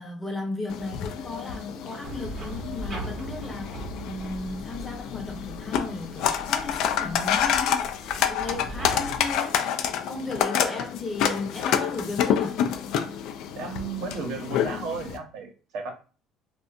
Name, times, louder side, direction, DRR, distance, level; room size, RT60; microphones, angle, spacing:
voice 1, 0.0-7.8 8.2-9.6 10.1-12.6, left 3 dB, 20° left, 0.7 m, -35 dB
sound 1, 0.7-15.2, left 8 dB, 70° left, 0.3 m, -28 dB
sound 2, 2.0-9.4, right 2 dB, 40° right, 0.7 m, -39 dB
voice 2, 13.5-15.9, right 5 dB, 75° right, 0.8 m, -34 dB
2.7 x 2.2 x 2.4 m
supercardioid pair, 100°, 0 cm